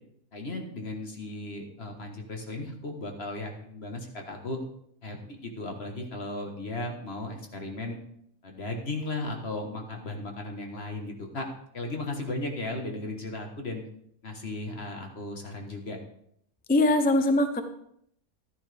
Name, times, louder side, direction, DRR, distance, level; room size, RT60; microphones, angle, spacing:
voice 1, 0.3-4.6 5.0-8.0 8.4-11.5 11.7-13.8 14.2-16.0, left 2 dB, 45° left, 3 dB, 1.6 m, -36 dB
voice 2, 16.7-17.6, left 2 dB, 15° left, 7 dB, 0.4 m, -22 dB
12.5 x 10.0 x 3.4 m, 0.70 s
omnidirectional pair, 1.5 m